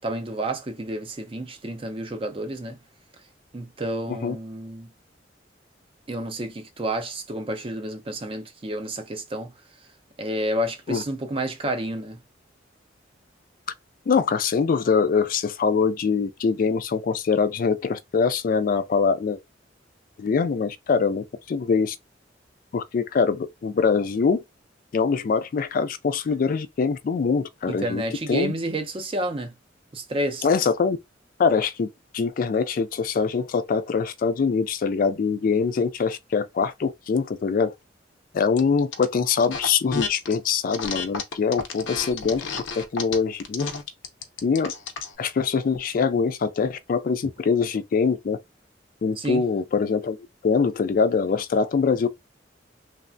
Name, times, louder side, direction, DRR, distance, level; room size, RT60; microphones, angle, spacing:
voice 1, 0.0-2.8 3.5-4.9 6.1-9.5 10.2-12.2 27.7-29.5 29.9-30.5 49.2-49.4, right 1 dB, 30° right, 0.5 m, -30 dB
voice 2, 14.1-19.4 20.2-22.0 22.7-24.4 24.9-28.0 28.3-28.5 30.4-31.0 31.4-37.7 38.3-42.5 42.7-43.7 44.4-44.7 45.2-48.4 49.0-50.2 50.4-52.1, left 5 dB, 45° left, 0.3 m, -23 dB
sound 1, 38.6-39.0 39.4-40.4 40.7-45.1, left 5 dB, 90° left, 0.7 m, -31 dB
3.2 x 2.1 x 2.5 m
head